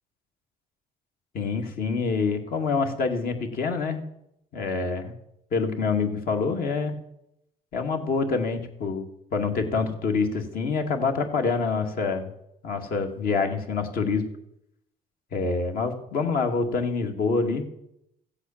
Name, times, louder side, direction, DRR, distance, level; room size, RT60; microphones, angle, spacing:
voice 1, 1.3-4.0 4.5-5.1 5.5-6.9 7.7-12.3 12.6-14.3 15.3-17.7, left 4 dB, 60° left, 4 dB, 2.2 m, -26 dB
16.0 x 8.2 x 7.3 m, 0.81 s
cardioid pair, 110°, 17 cm